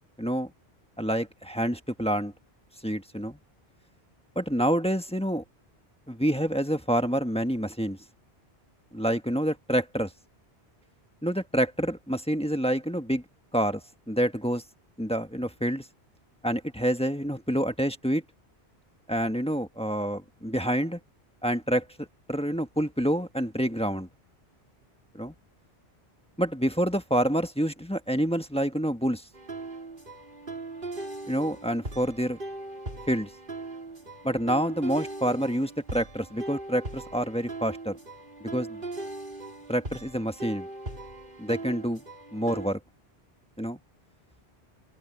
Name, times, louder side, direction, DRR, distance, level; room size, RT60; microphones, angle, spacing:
voice 1, 0.2-0.5 1.0-2.3 2.8-3.4 4.3-5.4 6.1-8.0 8.9-10.1 11.2-13.2 13.5-13.8 14.1-14.6 15.0-15.9 16.4-18.2 19.1-21.0 21.4-24.1 25.1-25.3 26.4-29.2 31.3-32.4 33.1-33.3 34.2-38.0 38.4-38.8 39.7-40.7 41.4-42.0 42.3-42.8 43.6-43.8, equal, 5° left, 1.3 m, -27 dB
sound 1, 29.3-42.7, right 2 dB, 55° right, 3.9 m, -39 dB
open air
omnidirectional pair, 1.1 m